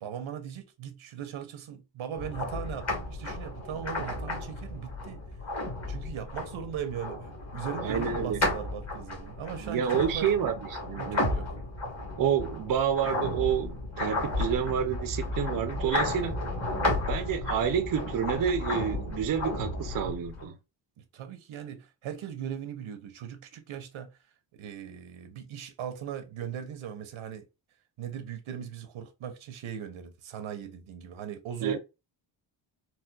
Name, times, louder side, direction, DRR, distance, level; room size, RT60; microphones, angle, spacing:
voice 1, 0.0-5.2 5.9-10.3 10.9-11.5 21.0-24.2 24.5-27.5 28.0-31.8, right 8 dB, 85° right, 0.9 m, -39 dB
sound 1, 2.2-20.4, left 2 dB, 35° left, 1.3 m, -33 dB
voice 2, 7.8-8.4 9.6-11.3 12.2-16.4 17.1-20.6 31.6-31.8, right 8 dB, 45° right, 0.5 m, -29 dB
4.2 x 2.2 x 2.2 m
wide cardioid pair, 120°, 48 cm